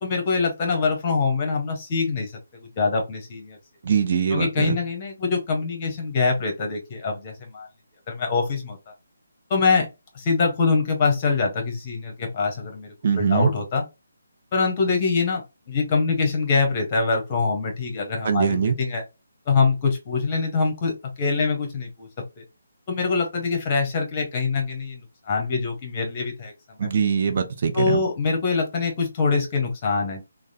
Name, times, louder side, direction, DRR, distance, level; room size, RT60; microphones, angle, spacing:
voice 1, 0.0-2.3 2.8-3.6 4.3-7.7 8.1-8.8 9.5-9.9 10.1-13.8 14.5-19.0 19.5-22.1 22.4-22.5 22.9-26.5 27.7-30.2, left 4 dB, 30° left, 1.1 m, -24 dB
voice 2, 3.8-4.8 13.0-13.5 18.2-18.7 26.8-28.0, right 6 dB, 45° right, 0.5 m, -22 dB
3.3 x 2.2 x 2.7 m
figure-of-eight pair, 150°, 0 cm